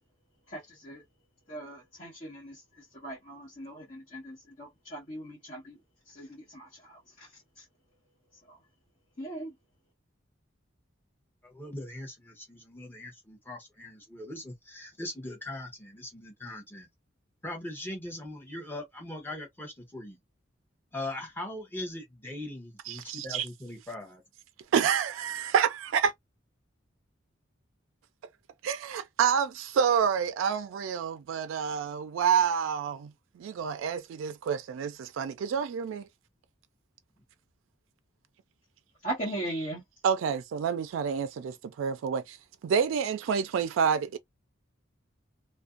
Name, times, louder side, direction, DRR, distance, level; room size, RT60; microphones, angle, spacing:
voice 1, 0.5-1.0 1.5-5.8 6.0-7.6 8.3-8.6 9.2-9.5 39.0-39.8, right 1 dB, 45° left, 1.2 m, -39 dB
voice 2, 11.4-16.9 17.4-20.2 20.9-24.2, left 1 dB, 10° left, 0.8 m, -40 dB
voice 3, 22.9-23.5 24.7-26.1 28.6-33.1 33.4-36.1 40.0-42.4 42.6-44.2, right 7 dB, 85° right, 0.3 m, -28 dB
2.5 x 2.1 x 2.3 m
head